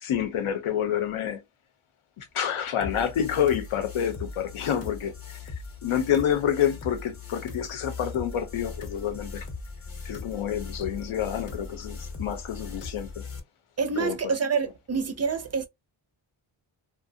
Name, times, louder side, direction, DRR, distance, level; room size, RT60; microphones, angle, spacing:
voice 1, 0.0-1.4 2.2-5.1 5.8-9.5 10.0-13.2 14.0-14.2, left 9 dB, 85° left, 0.8 m, -28 dB
sound 1, 2.8-13.4, left 4 dB, 30° left, 0.7 m, -39 dB
voice 2, 13.8-15.7, right 5 dB, 35° right, 0.4 m, -27 dB
2.5 x 2.2 x 2.5 m
wide cardioid pair, 135°, 48 cm